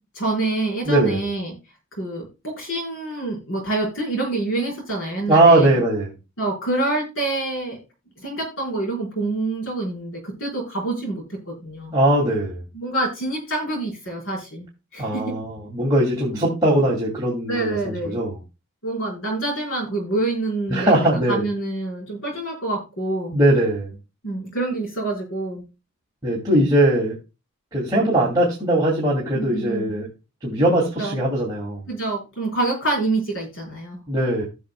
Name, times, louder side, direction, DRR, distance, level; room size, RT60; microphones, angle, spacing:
voice 1, 0.1-1.5 2.0-5.7 6.4-7.8 8.2-12.0 12.7-14.7 14.9-15.4 17.5-18.2 18.8-23.4 24.2-25.6 29.3-29.9 31.0-31.2 31.9-34.0, right 2 dB, 70° left, -3 dB, 4.6 m, -26 dB
voice 2, 0.8-1.2 5.3-6.1 11.9-12.6 15.0-18.4 20.7-21.4 23.3-23.9 26.2-27.2 27.7-30.1 30.4-31.8 34.1-34.4, right 1 dB, 20° right, -6 dB, 2.6 m, -20 dB
17.0 x 6.3 x 2.3 m, 0.28 s
head